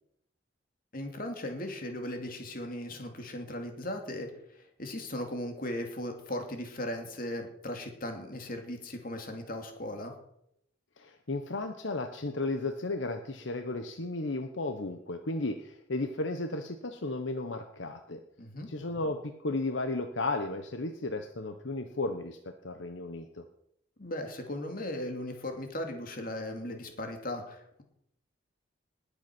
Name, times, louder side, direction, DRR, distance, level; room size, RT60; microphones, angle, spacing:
voice 1, 0.9-10.1 18.4-18.7 24.0-27.8, left 1 dB, 45° left, 4 dB, 2.7 m, -37 dB
voice 2, 11.0-18.2 18.7-23.4, left 2 dB, 75° left, 7 dB, 1.1 m, -34 dB
20.0 x 8.3 x 6.2 m, 0.77 s
head